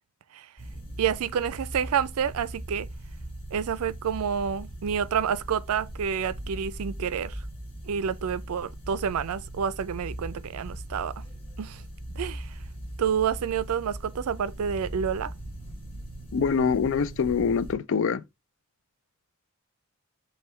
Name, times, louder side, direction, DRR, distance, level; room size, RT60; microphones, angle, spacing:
sound 1, 0.6-17.7, right 1 dB, 25° left, 1.6 m, -40 dB
voice 1, 1.0-2.9 3.5-7.4 7.9-11.2 11.6-11.8 12.2-12.5 13.0-15.3, right 7 dB, 85° right, 0.4 m, -29 dB
voice 2, 16.3-18.2, left 6 dB, 60° left, 0.4 m, -24 dB
5.4 x 2.2 x 4.2 m
head